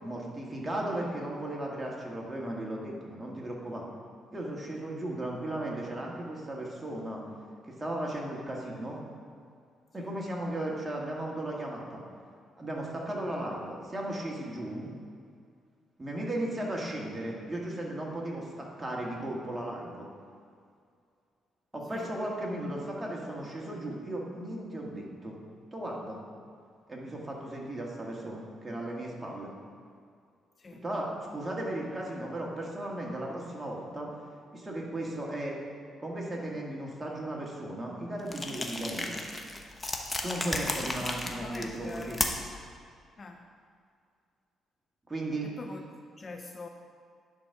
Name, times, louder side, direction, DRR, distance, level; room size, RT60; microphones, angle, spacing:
voice 1, 0.0-3.8 4.3-7.2 7.7-9.0 9.9-12.0 12.6-14.9 16.0-20.1 21.7-25.3 25.7-26.2 26.9-29.5 30.8-34.1 34.5-35.6 36.0-39.2 40.2-42.2 45.1-45.5, right 1 dB, 15° right, -3 dB, 1.8 m, -36 dB
sound 1, 38.3-42.6, left 2 dB, 20° left, 0.9 m, -34 dB
voice 2, 41.0-42.3 43.2-43.5 45.4-46.7, left 3 dB, 35° left, 4 dB, 0.5 m, -44 dB
10.5 x 4.1 x 5.9 m, 2.3 s
cardioid pair, 90°, 0 cm